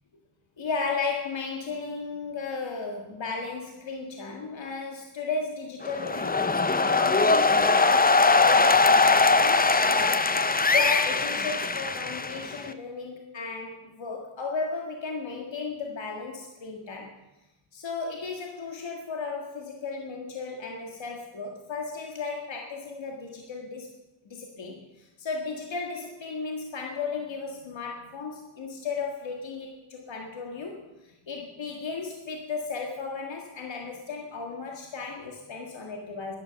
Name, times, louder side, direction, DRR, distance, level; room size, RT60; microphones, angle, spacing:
voice 1, 0.6-10.4 10.7-17.1 17.7-23.9 24.2-36.4, left 4 dB, 65° left, 1 dB, 1.9 m, -35 dB
sound 1, 5.8-12.7, left 3 dB, 20° left, 0.6 m, -21 dB
11.0 x 11.0 x 6.9 m, 0.99 s
cardioid pair, 75°, 48 cm